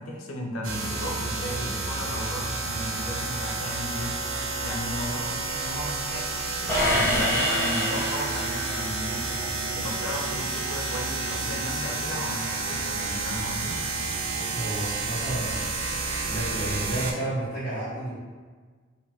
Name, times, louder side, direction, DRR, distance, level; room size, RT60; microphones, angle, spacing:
voice 1, 0.0-4.2 4.6-13.8, left 1 dB, 85° left, 1 dB, 0.5 m, -35 dB
sound 1, 0.6-17.1, right 3 dB, 85° right, 0.4 m, -30 dB
sound 2, 6.7-8.9, equal, 15° left, 0.6 m, -26 dB
voice 2, 14.5-15.6 16.2-18.1, right 1 dB, 45° left, -14 dB, 0.8 m, -31 dB
2.5 x 2.2 x 3.0 m, 1.5 s
head